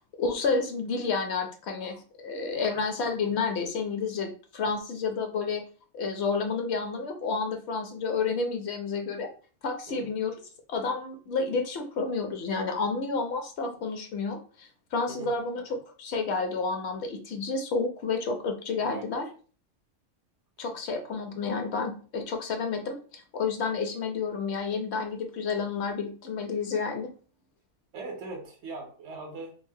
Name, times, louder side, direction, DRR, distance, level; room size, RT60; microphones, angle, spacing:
voice 1, 0.2-5.6 5.9-9.3 9.6-10.3 10.7-19.2 20.6-27.1, left 4 dB, 65° left, 4 dB, 0.8 m, -30 dB
voice 2, 2.5-2.8 9.9-10.1 15.1-15.3 18.7-19.0 27.9-29.6, right 3 dB, 65° right, 2 dB, 0.9 m, -40 dB
3.2 x 2.0 x 2.6 m, 0.39 s
omnidirectional pair, 1.3 m